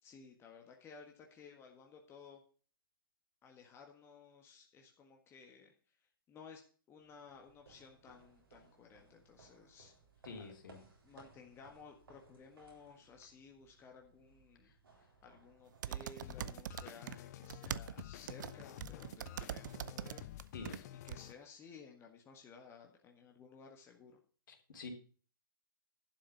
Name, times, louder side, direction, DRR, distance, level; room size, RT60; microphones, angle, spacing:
voice 1, 0.0-2.4 3.4-5.7 6.3-6.6 6.9-9.9 11.0-14.7 15.2-20.3 21.0-24.2, left 5 dB, 20° left, 2 dB, 1.6 m, -56 dB
sound 1, 7.0-16.7, right 4 dB, 80° right, 3.9 m, -64 dB
voice 2, 10.2-10.8 14.6-14.7 20.5-20.9 24.5-24.9, left 4 dB, 60° left, 3 dB, 3.3 m, -48 dB
sound 2, 15.8-17.2 17.4-20.8 21.1-21.2, right 10 dB, 55° right, 0.5 m, -42 dB
sound 3, 16.2-21.3, left 14 dB, 45° left, 0.6 m, -50 dB
11.5 x 6.4 x 7.0 m, 0.41 s
figure-of-eight pair, 120°, 12 cm